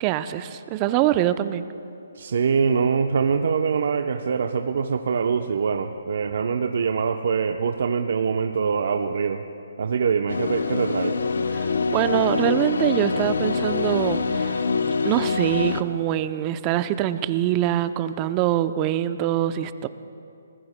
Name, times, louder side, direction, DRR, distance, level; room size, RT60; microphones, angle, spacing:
voice 1, 0.0-1.6 11.5-14.6 15.0-19.9, right 12 dB, 25° right, 12 dB, 0.5 m, -24 dB
voice 2, 2.2-9.4 9.8-11.1, right 6 dB, 65° right, 5 dB, 0.7 m, -24 dB
sound 1, 10.3-15.8, left 4 dB, 75° left, 0.8 m, -25 dB
25.0 x 20.0 x 2.2 m, 2.6 s
hypercardioid pair, 145°, 0 cm